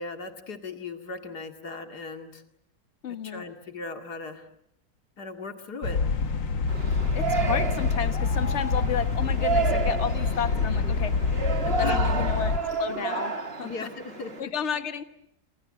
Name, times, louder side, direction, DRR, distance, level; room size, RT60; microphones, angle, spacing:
voice 1, 0.0-2.4 3.2-4.5 5.2-6.1 11.8-12.2 13.6-14.5, left 3 dB, 60° left, 6 dB, 2.8 m, -37 dB
voice 2, 3.0-3.5 7.1-13.9 14.4-15.0, left 7 dB, 40° left, 11 dB, 1.5 m, -32 dB
sound 1, 5.8-12.6, left 4 dB, 80° left, 2.5 m, -26 dB
Yell, 6.7-14.4, right 5 dB, 35° right, 1.9 m, -31 dB
27.0 x 26.5 x 7.5 m, 0.76 s
omnidirectional pair, 2.0 m